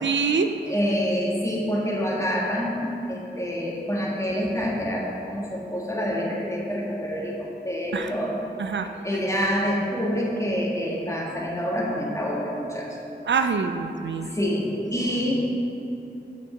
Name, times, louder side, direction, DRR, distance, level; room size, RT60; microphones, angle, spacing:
voice 1, 0.0-0.5 7.9-8.2 8.6-8.9 13.3-14.4, right 5 dB, 85° right, 7 dB, 0.4 m, -25 dB
voice 2, 0.7-8.4 9.0-12.9 14.2-15.3, equal, 15° left, -4 dB, 1.6 m, -27 dB
6.4 x 5.4 x 7.0 m, 2.8 s
wide cardioid pair, 65°, 18 cm